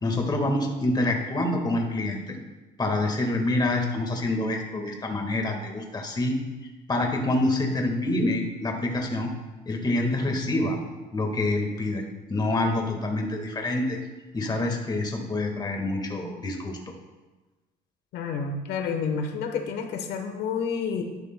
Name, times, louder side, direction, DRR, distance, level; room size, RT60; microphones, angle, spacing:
voice 1, 0.0-2.3 2.8-6.4 6.9-9.3 9.6-10.8 11.1-12.0 12.3-14.0 14.3-16.8, left 2 dB, 25° left, 3 dB, 1.6 m, -26 dB
voice 2, 18.1-21.0, left 5 dB, 80° left, 5 dB, 1.0 m, -29 dB
12.0 x 9.7 x 2.2 m, 1.2 s
cardioid pair, 110°, 17 cm